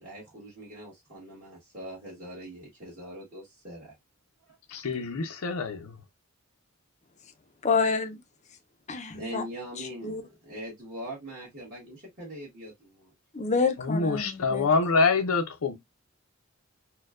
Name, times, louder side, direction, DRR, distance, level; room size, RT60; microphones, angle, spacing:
voice 1, 0.0-3.9 4.5-4.6 9.1-13.1, equal, 40° right, 1.4 m, -42 dB
voice 2, 4.7-5.9 13.8-15.8, left 4 dB, 80° left, 0.6 m, -26 dB
voice 3, 7.6-8.2 8.9-9.4 9.8-10.2 13.3-14.7, left 4 dB, 30° left, 0.5 m, -28 dB
4.3 x 2.2 x 2.3 m
head